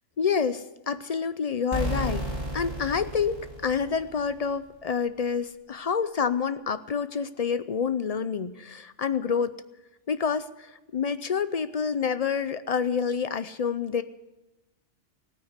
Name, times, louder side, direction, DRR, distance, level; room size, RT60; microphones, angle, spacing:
voice 1, 0.2-2.2 2.5-9.6 10.1-14.0, left 6 dB, 50° left, 13 dB, 0.4 m, -28 dB
sound 1, 1.7-4.4, right 1 dB, 15° right, 3.5 m, -32 dB
16.5 x 9.3 x 8.0 m, 1.0 s
omnidirectional pair, 1.3 m